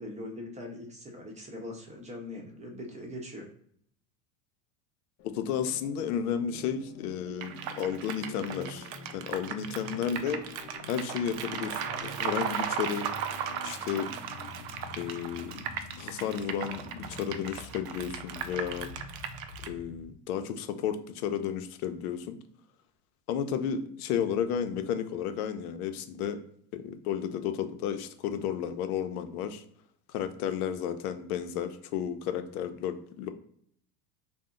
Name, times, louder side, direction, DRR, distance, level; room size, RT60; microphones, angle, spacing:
voice 1, 0.0-3.5 9.9-10.1, left 1 dB, 15° right, 1 dB, 0.7 m, -41 dB
sound 1, 5.2-20.2, left 3 dB, 45° left, 0.6 m, -47 dB
voice 2, 5.3-10.4 10.9-13.1 13.6-14.1 14.9-15.6 16.0-18.9 19.6-22.4 23.3-26.4 26.7-29.6 30.1-33.3, left 8 dB, 85° left, 8 dB, 0.6 m, -33 dB
sound 2, 7.4-19.7, right 8 dB, 65° right, 0.6 m, -37 dB
2.7 x 2.0 x 3.7 m, 0.65 s
supercardioid pair, 115°, 43 cm